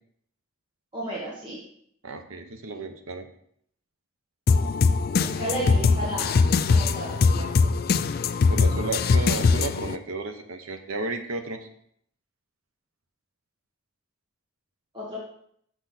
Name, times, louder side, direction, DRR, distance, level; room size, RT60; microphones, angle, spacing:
voice 1, 0.9-1.6 5.2-6.4 6.7-7.7 7.9-8.0 14.9-15.2, right 1 dB, 20° right, -6 dB, 1.4 m, -33 dB
voice 2, 2.0-3.3 8.5-11.7, right 3 dB, 75° right, 7 dB, 0.9 m, -33 dB
sound 1, 4.5-10.0, left 4 dB, 45° left, 0.3 m, -22 dB
6.5 x 6.2 x 4.1 m, 0.67 s
head